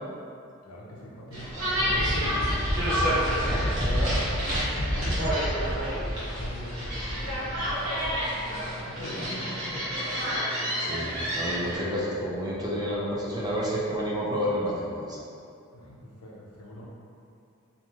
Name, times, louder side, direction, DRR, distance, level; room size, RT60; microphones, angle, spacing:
voice 1, 0.6-2.8 3.4-7.8 8.5-9.9 15.7-16.9, equal, 85° left, -4 dB, 0.6 m, -41 dB
sound 1, 1.3-11.8, equal, 75° right, 1.0 m, -28 dB
voice 2, 10.8-15.2, equal, 20° right, -5 dB, 0.4 m, -30 dB
3.0 x 2.5 x 2.3 m, 2.5 s
head